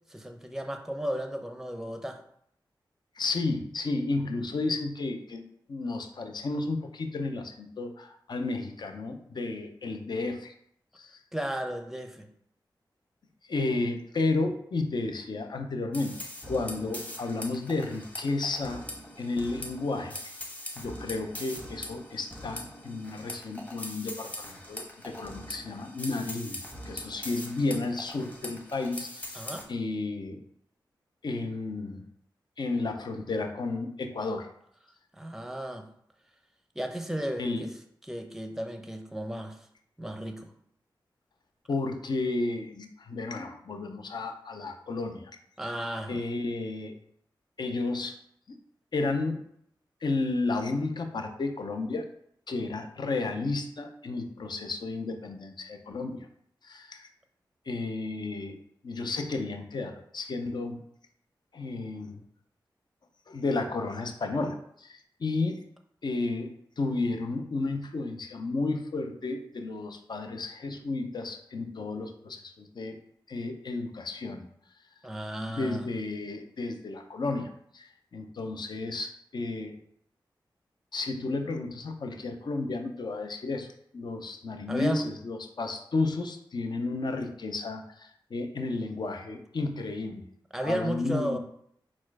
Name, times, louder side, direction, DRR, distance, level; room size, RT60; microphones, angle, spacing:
voice 1, 0.1-2.2 11.3-12.3 29.3-29.7 35.1-35.9 36.8-37.7 38.0-39.6 40.0-40.5 45.6-46.2 75.0-75.9 84.7-85.0 90.5-91.4, right 1 dB, 5° right, 5 dB, 0.6 m, -34 dB
voice 2, 3.2-5.4 5.7-10.5 11.0-11.2 13.5-18.8 19.2-20.2 20.8-26.6 26.9-29.4 29.7-30.4 31.2-32.0 32.6-34.5 37.4-37.7 41.7-45.3 45.6-45.7 46.1-47.0 47.6-48.2 48.5-48.6 48.9-49.4 50.0-52.0 52.5-56.3 56.6-57.1 57.7-58.6 58.8-60.8 61.5-62.2 63.3-65.6 66.0-73.0 73.3-74.5 75.5-79.8 80.9-83.7 83.9-90.2 90.6-91.4, left 3 dB, 60° left, 5 dB, 0.6 m, -32 dB
sound 1, 15.9-29.6, left 1 dB, 15° left, 1.2 m, -42 dB
4.3 x 2.4 x 4.6 m, 0.69 s
cardioid pair, 50°, 8 cm